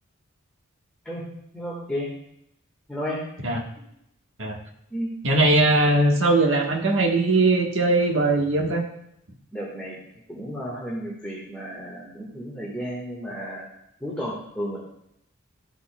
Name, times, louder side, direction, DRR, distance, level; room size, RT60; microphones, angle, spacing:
voice 1, 1.5-2.1 2.9-3.2 4.9-5.1 9.5-10.0 10.3-13.7 14.0-14.8, equal, 5° left, -6 dB, 1.6 m, -32 dB
voice 2, 5.2-8.8, right 2 dB, 60° right, 2 dB, 1.3 m, -20 dB
13.0 x 8.3 x 2.3 m, 0.77 s
head